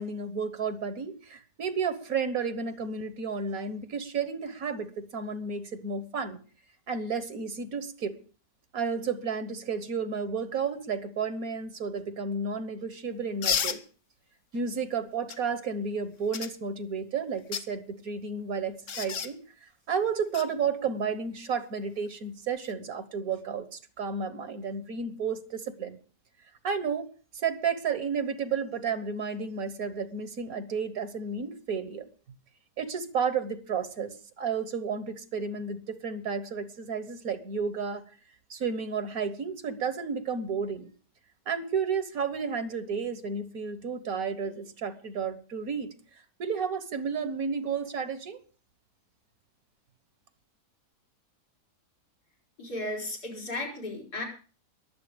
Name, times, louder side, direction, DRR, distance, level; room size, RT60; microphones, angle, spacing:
voice 1, 0.0-6.4 6.9-8.2 8.7-13.8 14.5-26.0 26.6-27.1 27.3-32.1 32.8-38.0 38.5-40.9 41.5-45.9 46.4-48.4, right 5 dB, 65° right, 12 dB, 1.7 m, -32 dB
sound 1, 13.4-13.8 15.3-15.4 16.3-16.5 17.3-17.7 18.9-19.3 20.3-20.5 22.5-22.7, left 7 dB, 55° left, 1.2 m, -30 dB
voice 2, 52.6-54.2, left 1 dB, 85° left, 2 dB, 5.6 m, -35 dB
22.0 x 7.9 x 5.1 m, 0.39 s
omnidirectional pair, 1.7 m